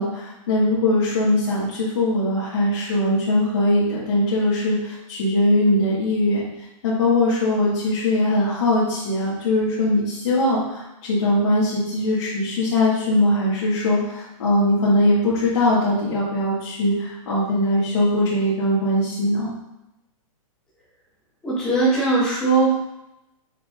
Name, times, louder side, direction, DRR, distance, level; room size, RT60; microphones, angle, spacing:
voice 1, 0.0-6.4 6.8-19.5, left 1 dB, 55° left, -10 dB, 2.2 m, -21 dB
voice 2, 21.4-22.7, right 3 dB, 5° left, -9 dB, 1.7 m, -19 dB
6.8 x 5.8 x 2.6 m, 0.91 s
hypercardioid pair, 180°, 17 cm